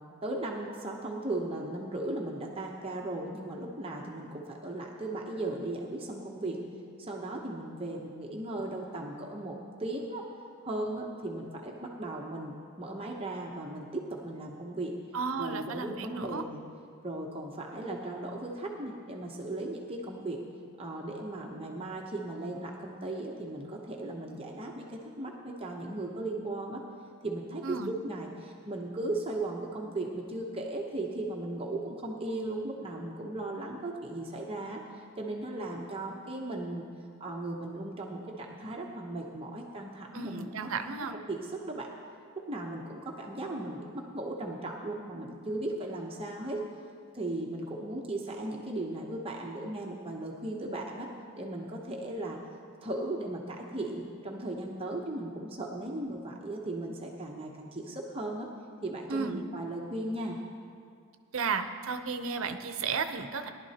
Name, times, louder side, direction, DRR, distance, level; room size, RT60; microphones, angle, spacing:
voice 1, 0.2-6.6 7.0-10.2 10.6-14.9 15.4-16.6 17.0-20.4 20.8-26.8 27.2-34.8 35.2-36.8 37.2-40.7 41.3-41.9 42.4-46.6 47.1-51.1 51.4-52.4 52.8-58.5 58.8-60.4, right 2 dB, 25° right, 0 dB, 0.8 m, -37 dB
voice 2, 15.1-16.4 27.6-27.9 40.1-41.2 59.1-59.4 61.3-63.5, right 5 dB, 70° right, 8 dB, 0.7 m, -33 dB
18.5 x 11.5 x 2.9 m, 2.3 s
head